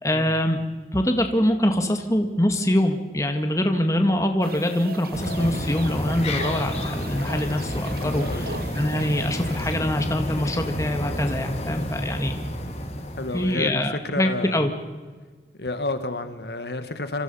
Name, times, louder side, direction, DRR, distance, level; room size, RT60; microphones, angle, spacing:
voice 1, 0.0-0.6 0.9-12.4 13.3-14.7, left 1 dB, 15° left, 5 dB, 2.0 m, -24 dB
sound 1, 4.4-9.8, right 4 dB, 55° right, 1.3 m, -39 dB
sound 2, 5.1-13.6, left 1 dB, 35° left, 2.9 m, -30 dB
voice 2, 8.0-8.5 13.2-14.7 15.6-17.2, left 2 dB, 65° left, 9 dB, 1.7 m, -31 dB
26.5 x 25.5 x 5.7 m, 1.4 s
head